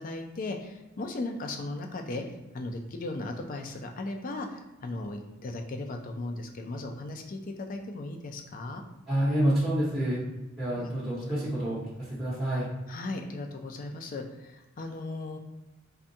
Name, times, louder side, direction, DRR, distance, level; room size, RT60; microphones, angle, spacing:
voice 1, 0.0-2.2 2.5-7.4 7.7-8.8 10.8-10.9 12.9-15.4, left 2 dB, 40° left, 4 dB, 0.3 m, -37 dB
voice 2, 9.1-10.2 10.6-12.7, right 1 dB, ahead, -8 dB, 0.7 m, -28 dB
3.5 x 2.2 x 2.7 m, 1.0 s
head